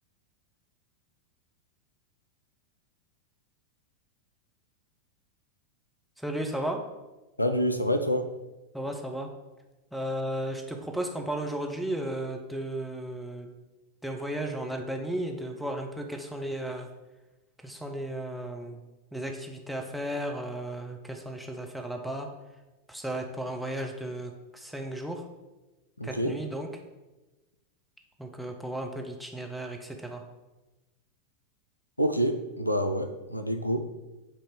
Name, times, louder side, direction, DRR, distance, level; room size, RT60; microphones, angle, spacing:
voice 1, 6.2-6.8 8.7-9.3 9.9-13.5 14.0-16.9 17.6-18.8 19.1-22.3 22.9-25.2 26.0-26.7 28.2-30.2, right 1 dB, ahead, 3 dB, 0.8 m, -34 dB
voice 2, 7.4-8.3 26.0-26.4 32.0-33.9, equal, 85° left, 8 dB, 0.5 m, -27 dB
8.3 x 2.9 x 5.2 m, 1.1 s
figure-of-eight pair, 90°, 0 cm